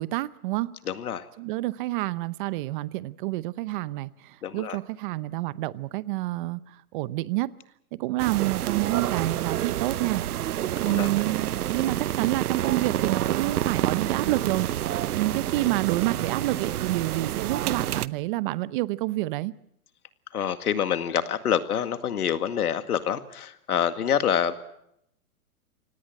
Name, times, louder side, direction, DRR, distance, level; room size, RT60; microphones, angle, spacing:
voice 1, 0.0-0.7 1.4-7.5 8.0-10.2 10.5-19.5, right 18 dB, 35° right, 18 dB, 0.8 m, -28 dB
voice 2, 0.9-1.3 4.4-4.8 10.9-11.1 20.3-24.5, left 8 dB, 80° left, 10 dB, 2.0 m, -26 dB
sound 1, 8.2-18.1, right 12 dB, 80° right, 0.8 m, -28 dB
26.0 x 18.5 x 7.8 m, 0.77 s
hypercardioid pair, 145°, 44 cm